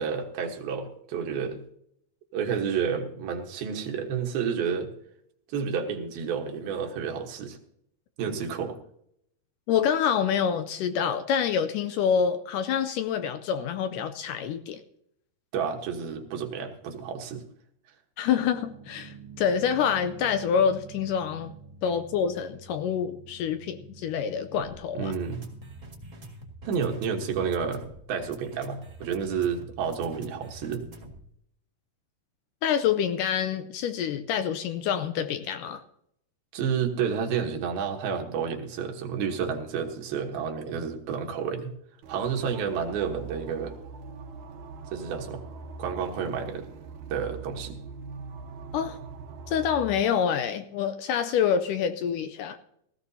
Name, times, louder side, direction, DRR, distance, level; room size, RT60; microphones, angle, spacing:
voice 1, 0.0-1.6 2.3-4.9 5.5-7.6 8.2-8.8 15.5-17.4 24.9-25.4 26.7-27.8 28.1-30.8 36.5-41.7 42.1-43.8 44.9-45.5 45.8-46.7 47.1-47.8, right 6 dB, 85° right, 3 dB, 3.2 m, -30 dB
voice 2, 9.7-14.8 18.2-21.5 21.8-25.1 32.6-35.8 48.7-49.0 49.5-52.6, left 7 dB, 80° left, 9 dB, 2.0 m, -27 dB
sound 1, 18.3-31.3, right 2 dB, 30° right, 1.6 m, -46 dB
sound 2, 42.0-50.0, right 4 dB, 70° right, 2.2 m, -42 dB
17.5 x 15.0 x 2.8 m, 0.73 s
omnidirectional pair, 4.2 m